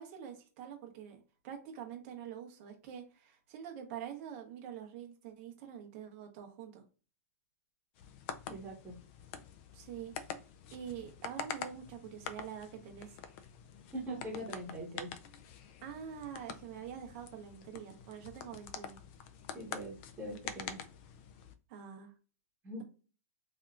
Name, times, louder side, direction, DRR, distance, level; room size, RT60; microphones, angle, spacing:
voice 1, 0.0-6.8 9.7-10.3 10.7-13.2 15.8-19.0 21.7-22.1, right 8 dB, 40° right, 0.9 m, -46 dB
sound 1, 8.0-21.5, left 7 dB, 40° left, 0.4 m, -47 dB
voice 2, 8.5-8.9 13.9-15.1 19.5-20.8 22.6-22.8, right 1 dB, 15° right, 1.3 m, -42 dB
3.4 x 2.8 x 2.4 m
hypercardioid pair, 155°, 9 cm